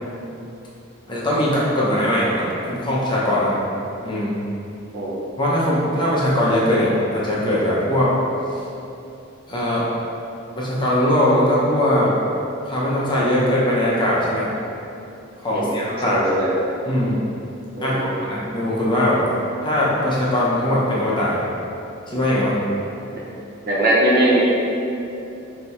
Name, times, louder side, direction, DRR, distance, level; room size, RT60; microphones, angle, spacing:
voice 1, 1.1-3.6 4.0-4.4 5.4-8.1 9.5-9.8 10.5-12.1 12.7-14.5 15.4-16.2 16.8-17.2 17.8-19.2 19.6-21.4 22.1-22.6, left 1 dB, 25° left, -7 dB, 0.6 m, -20 dB
voice 2, 16.1-16.5 17.8-18.2 23.7-24.4, right 1 dB, 45° right, -6 dB, 0.7 m, -20 dB
3.4 x 2.7 x 4.2 m, 2.8 s
head